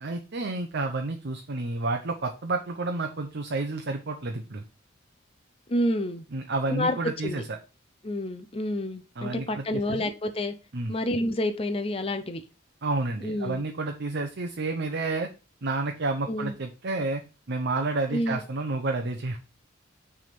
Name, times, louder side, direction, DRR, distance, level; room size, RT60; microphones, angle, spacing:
voice 1, 0.0-4.6 6.3-7.6 9.2-10.1 10.7-11.0 12.8-15.3 15.6-17.2 17.5-19.4, right 3 dB, 60° right, 0.7 m, -30 dB
voice 2, 5.7-6.2 6.7-7.0 7.2-7.4 8.0-10.5 10.9-12.4 13.2-13.6 16.3-16.6 18.1-18.4, left 1 dB, 30° left, 0.6 m, -29 dB
6.2 x 3.5 x 5.8 m
head